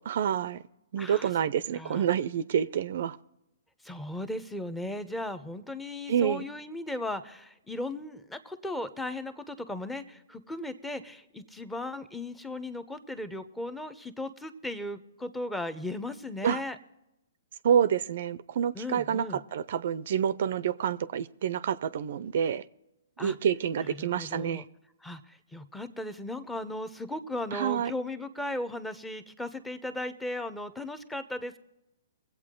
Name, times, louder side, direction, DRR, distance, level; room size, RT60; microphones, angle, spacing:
voice 1, 0.1-0.6 0.9-3.2 6.1-6.5 16.4-16.6 17.6-22.6 23.2-24.6 27.5-27.9, right 8 dB, 60° right, 17 dB, 0.5 m, -28 dB
voice 2, 1.0-1.3 1.7-2.0 3.8-16.8 18.7-19.4 23.2-23.3 24.0-24.6 25.0-31.6, left 1 dB, 5° left, 11 dB, 0.8 m, -36 dB
22.5 x 8.2 x 3.7 m, 0.90 s
hypercardioid pair, 130°, 0 cm